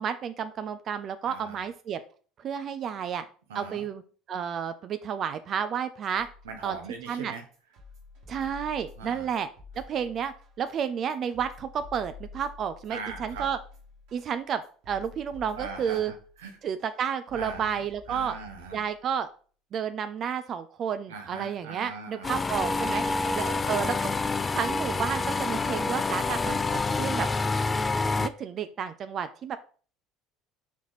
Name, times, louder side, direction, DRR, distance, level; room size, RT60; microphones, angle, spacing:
voice 1, 0.0-2.0 2.4-3.2 3.5-4.0 4.3-6.3 6.6-6.8 7.1-7.3 8.3-9.5 9.9-13.6 14.1-16.1 16.6-18.3 18.7-19.3 19.7-23.0 23.3-24.1 24.5-27.3 28.2-29.6, right 8 dB, 50° right, 11 dB, 0.4 m, -31 dB
voice 2, 1.2-1.7 3.5-3.9 6.4-7.5 9.0-9.3 12.9-13.5 15.6-16.6 17.3-18.8 21.1-23.6 26.7-27.2, right 5 dB, 90° right, 5 dB, 0.9 m, -41 dB
sound 1, 6.1-19.1, left 4 dB, 70° right, 1.7 m, -49 dB
sound 2, 22.2-28.3, left 3 dB, 25° left, 0.3 m, -27 dB
4.3 x 2.9 x 4.0 m, 0.41 s
hypercardioid pair, 80°, 0 cm